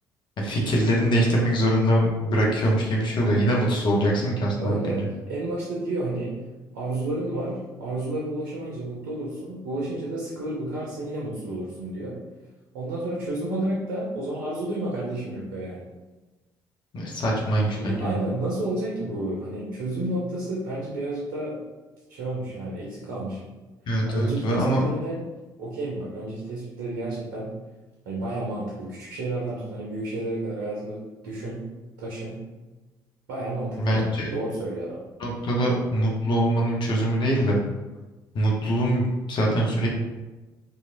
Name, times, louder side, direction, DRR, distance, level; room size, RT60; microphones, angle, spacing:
voice 1, 0.4-5.0 16.9-18.1 23.9-24.8 33.8-34.3 35.2-37.6 38.3-39.9, right 1 dB, 50° left, -2 dB, 0.7 m, -23 dB
voice 2, 4.6-6.3 6.7-12.2 12.7-15.9 17.7-21.6 22.1-23.4 24.1-25.2 25.6-27.5 28.1-31.7 32.0-32.4 33.3-35.0, right 1 dB, 75° right, -5 dB, 0.6 m, -31 dB
2.9 x 2.4 x 2.5 m, 1.1 s
hypercardioid pair, 50°, 11 cm